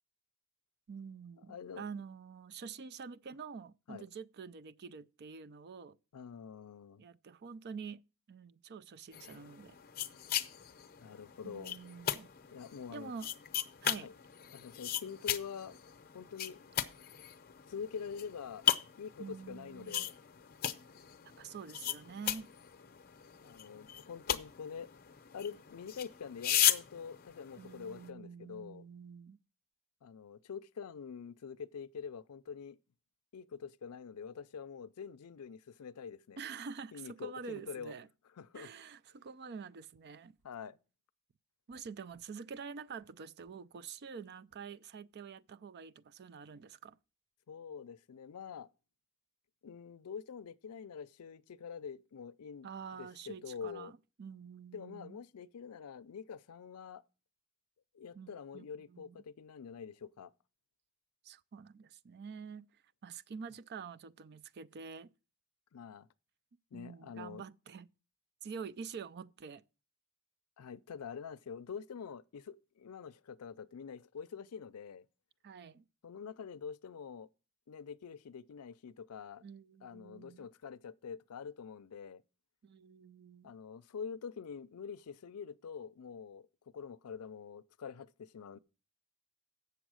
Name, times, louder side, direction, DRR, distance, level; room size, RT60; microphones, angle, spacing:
voice 1, 0.9-6.0 7.0-8.0 8.3-9.8 11.4-12.3 12.9-13.3 13.8-14.1 19.2-20.1 21.4-22.5 27.6-29.4 36.4-38.1 38.5-40.3 41.7-47.0 52.6-55.2 58.1-59.2 61.2-62.7 63.0-65.1 66.7-67.9 68.4-69.6 75.4-75.8 79.4-80.4 82.6-83.5, right 5 dB, 50° right, 0.4 m, -47 dB
voice 2, 1.5-1.8 3.9-4.1 6.1-7.0 11.0-11.7 12.5-13.1 14.0-14.1 14.5-15.8 16.1-16.6 17.7-18.6 19.0-20.1 23.4-24.9 25.3-28.9 30.0-32.8 33.3-36.4 36.9-37.9 38.4-38.7 40.4-40.8 47.5-48.7 49.6-52.7 53.0-53.9 54.7-57.0 57.9-60.3 65.7-66.1 66.7-67.4 70.6-75.1 76.0-77.3 77.7-79.4 79.8-82.2 83.4-86.5 86.7-88.6, left 6 dB, 90° left, 0.5 m, -46 dB
sound 1, 9.1-28.1, left 11 dB, 45° left, 0.7 m, -37 dB
8.1 x 6.9 x 6.2 m
head